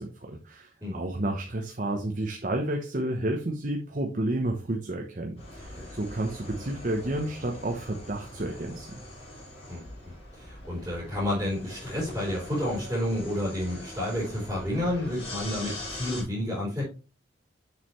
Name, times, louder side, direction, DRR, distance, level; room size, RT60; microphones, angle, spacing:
voice 1, 0.0-8.9, right 1 dB, 45° right, 2 dB, 0.9 m, -31 dB
sound 1, 5.4-16.2, left 1 dB, 30° left, 4.1 m, -42 dB
voice 2, 10.3-16.8, left 1 dB, 10° right, -10 dB, 3.6 m, -30 dB
7.1 x 6.4 x 3.1 m, 0.34 s
head